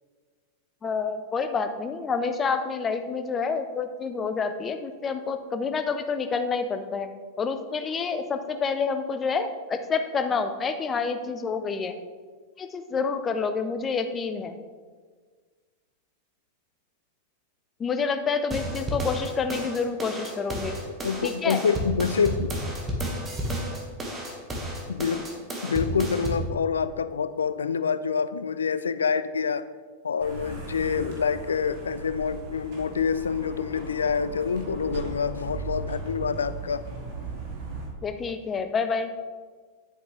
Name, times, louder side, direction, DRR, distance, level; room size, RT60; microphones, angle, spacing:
voice 1, 0.8-7.1 7.4-11.9 12.6-14.6 17.8-20.8 21.2-21.6 38.0-39.1, left 5 dB, 20° left, 8 dB, 0.7 m, -28 dB
sound 1, 18.5-26.5, equal, 20° right, 1.8 m, -32 dB
voice 2, 21.0-22.6 24.9-25.2 25.6-29.6 30.0-36.8, left 6 dB, 70° left, 14 dB, 0.3 m, -27 dB
sound 2, 30.2-37.9, right 3 dB, 50° right, 2.3 m, -37 dB
9.6 x 8.0 x 3.4 m, 1.5 s
figure-of-eight pair, 90°, 0 cm